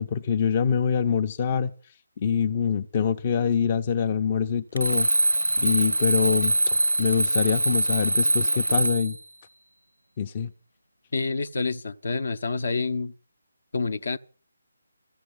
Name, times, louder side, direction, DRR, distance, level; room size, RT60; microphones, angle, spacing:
voice 1, 0.0-1.7 2.2-5.1 5.6-9.2 10.2-10.5, left 7 dB, 30° left, 0.7 m, -25 dB
Alarm, 4.8-9.2, right 1 dB, 90° right, 0.6 m, -23 dB
voice 2, 11.1-13.1 13.7-14.2, left 3 dB, 60° left, 0.9 m, -28 dB
14.5 x 8.5 x 8.0 m
figure-of-eight pair, 150°, 0 cm